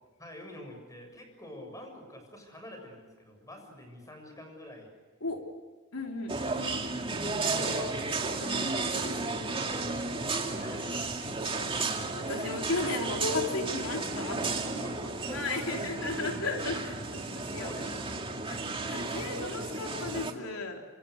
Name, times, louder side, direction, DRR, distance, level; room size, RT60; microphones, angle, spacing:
voice 1, 0.2-4.9 6.4-6.6 7.3-8.1 10.2-11.4 14.4-15.8 16.4-16.7 17.6-18.2, equal, 15° left, 4 dB, 7.2 m, -47 dB
voice 2, 5.9-6.4 7.5-8.0 8.4-9.5 11.6-11.7 12.1-14.4 15.3-18.0 18.3-20.8, left 2 dB, 90° left, 2 dB, 3.8 m, -35 dB
sound 1, 6.3-20.3, right 3 dB, 25° right, 2.4 m, -33 dB
26.5 x 26.5 x 6.6 m, 1.4 s
head